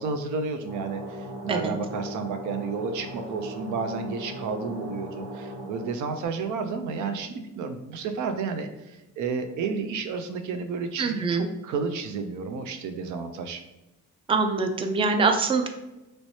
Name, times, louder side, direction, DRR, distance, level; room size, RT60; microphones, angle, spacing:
voice 1, 0.0-13.6, right 4 dB, 75° right, 7 dB, 0.5 m, -31 dB
sound 1, 0.7-6.3, right 1 dB, 60° right, 1.2 m, -38 dB
voice 2, 11.0-11.5 14.3-15.7, right 4 dB, 20° right, 5 dB, 0.4 m, -24 dB
3.1 x 3.1 x 2.7 m, 0.98 s
cardioid pair, 90°, 30 cm